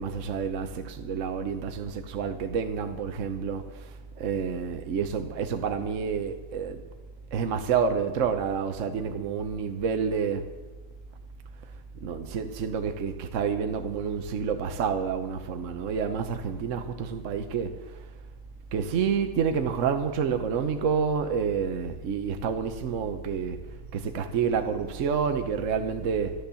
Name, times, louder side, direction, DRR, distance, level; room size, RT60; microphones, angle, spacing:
voice 1, 0.0-6.8 7.3-10.5 12.0-17.7 18.7-23.6 23.9-26.3, right 6 dB, 60° right, 0.8 m, -29 dB
13.0 x 13.0 x 6.9 m
omnidirectional pair, 2.4 m